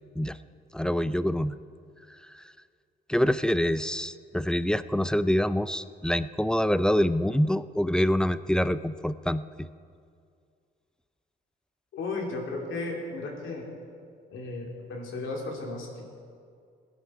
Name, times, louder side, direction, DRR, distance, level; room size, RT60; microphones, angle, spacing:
voice 1, 0.7-1.6 2.3-2.4 3.1-9.4, equal, 5° left, 14 dB, 0.4 m, -26 dB
voice 2, 11.9-13.7 14.3-16.0, left 3 dB, 75° left, 0 dB, 2.7 m, -34 dB
17.5 x 10.5 x 4.8 m, 2.2 s
cardioid pair, 90°, 20 cm